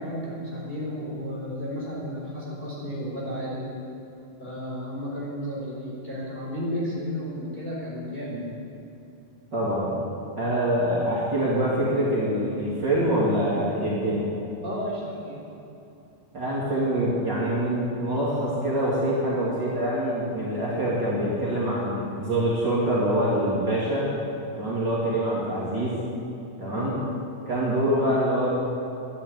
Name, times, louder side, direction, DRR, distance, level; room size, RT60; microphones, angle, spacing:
voice 1, 0.0-3.7 4.4-8.4 14.6-15.4 19.6-19.8 26.7-27.0, equal, 15° left, -6 dB, 4.5 m, -33 dB
voice 2, 9.5-10.0 10.4-14.3 16.3-24.1 24.5-26.0 26.6-27.0 27.5-28.5, right 1 dB, 35° right, -8 dB, 3.3 m, -25 dB
14.0 x 11.0 x 9.4 m, 2.8 s
omnidirectional pair, 3.7 m